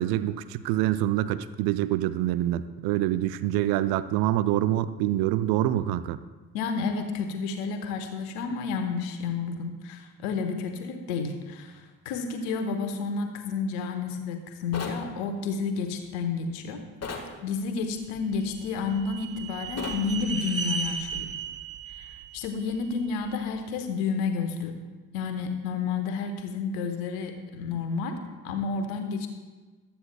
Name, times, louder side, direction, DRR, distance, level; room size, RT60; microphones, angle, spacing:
voice 1, 0.0-6.2, right 13 dB, 55° right, 14 dB, 0.6 m, -26 dB
voice 2, 6.5-16.8 17.4-21.3 21.9-24.8 25.1-29.3, left 5 dB, 70° left, 7 dB, 1.2 m, -31 dB
sound 1, 14.7-15.0 17.0-17.3 19.8-20.0, left 4 dB, 35° left, 1.6 m, -34 dB
sound 2, 18.2-23.4, right 5 dB, 30° right, 1.5 m, -36 dB
15.0 x 12.0 x 2.3 m, 1.3 s
figure-of-eight pair, 45°, 43 cm